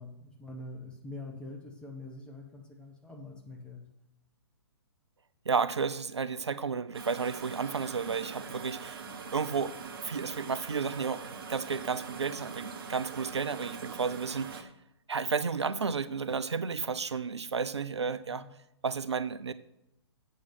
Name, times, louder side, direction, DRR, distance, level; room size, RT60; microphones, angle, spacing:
voice 1, 0.0-3.8 18.3-18.5, left 2 dB, 5° left, 1 dB, 1.3 m, -44 dB
voice 2, 5.5-9.1 9.3-14.7 15.1-18.4 18.8-19.5, right 5 dB, 75° right, 14 dB, 0.5 m, -32 dB
sound 1, 6.9-14.6, right 5 dB, 55° right, 1.2 m, -43 dB
8.4 x 7.2 x 5.9 m, 0.86 s
figure-of-eight pair, 120°, 14 cm